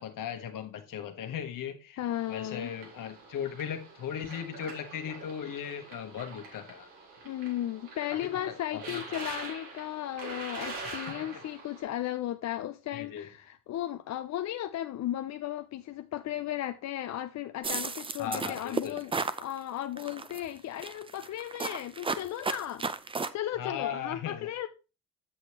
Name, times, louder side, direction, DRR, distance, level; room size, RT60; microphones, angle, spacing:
voice 1, 0.0-2.0 2.3-6.9 8.7-9.2 12.9-13.3 18.2-19.0 23.6-24.5, left 8 dB, 75° left, 1.2 m, -37 dB
voice 2, 2.0-2.7 7.2-22.9 23.3-24.7, left 12 dB, 55° left, 0.5 m, -35 dB
sound 1, 2.1-11.8, right 3 dB, 90° right, 2.3 m, -44 dB
sound 2, 17.6-19.4 20.0-20.4 20.8-23.3, right 4 dB, 15° right, 0.5 m, -33 dB
7.8 x 6.5 x 2.9 m
cardioid pair, 80°, 33 cm